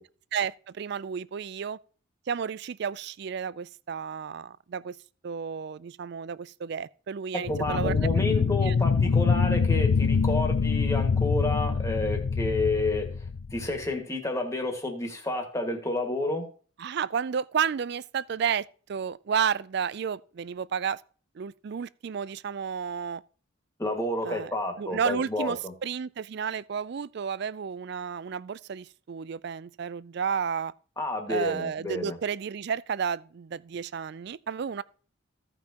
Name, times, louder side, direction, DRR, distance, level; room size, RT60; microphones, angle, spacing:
voice 1, 0.3-1.8 2.3-5.0 5.2-7.9 8.3-8.7 16.8-21.0 21.4-23.2 24.2-30.7 31.3-34.8, right 7 dB, 55° right, 0.3 m, -32 dB
sound 1, 7.5-13.9, left 5 dB, 75° left, 0.5 m, -25 dB
voice 2, 7.5-13.1 13.5-16.4 23.8-25.7 31.0-32.2, left 2 dB, 15° left, 1.8 m, -30 dB
16.0 x 5.9 x 2.9 m
head